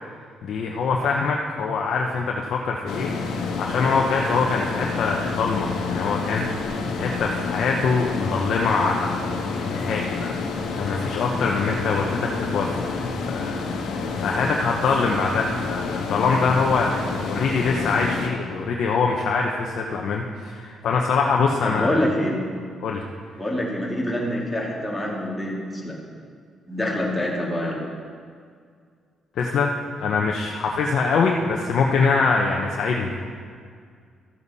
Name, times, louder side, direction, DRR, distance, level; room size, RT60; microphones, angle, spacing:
voice 1, 0.4-13.0 13.3-22.0 22.8-23.0 23.3-23.4 29.4-29.7 30.0-33.1, left 4 dB, 70° left, 0 dB, 0.8 m, -24 dB
sound 1, 2.9-18.3, left 4 dB, 85° left, 1.3 m, -29 dB
voice 2, 21.6-22.4 23.4-26.0 26.7-27.8, left 1 dB, 5° left, -4 dB, 2.3 m, -26 dB
13.5 x 7.1 x 4.1 m, 2.1 s
cardioid pair, 90°, 0 cm